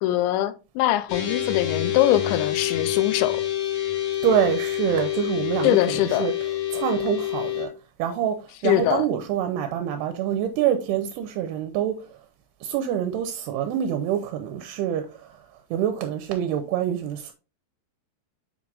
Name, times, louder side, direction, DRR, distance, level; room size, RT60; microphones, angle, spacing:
voice 1, 0.0-3.4 5.6-6.3 8.6-9.1, left 13 dB, 85° left, 2.9 m, -22 dB
sound 1, 1.1-7.7, left 12 dB, 65° left, 1.9 m, -27 dB
voice 2, 4.2-6.3 6.7-7.7 8.0-12.0 12.6-15.4 15.7-17.3, right 10 dB, 80° right, 2.6 m, -26 dB
7.2 x 6.1 x 2.5 m
omnidirectional pair, 5.1 m